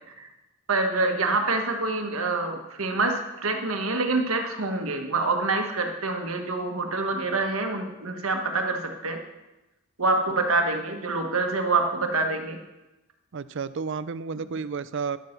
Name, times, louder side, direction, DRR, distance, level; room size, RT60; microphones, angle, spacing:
voice 1, 0.7-9.2 10.0-12.6, right 3 dB, 85° right, 4 dB, 1.5 m, -26 dB
voice 2, 13.3-15.2, right 5 dB, 60° right, 15 dB, 0.5 m, -31 dB
11.5 x 8.0 x 5.9 m, 1.0 s
head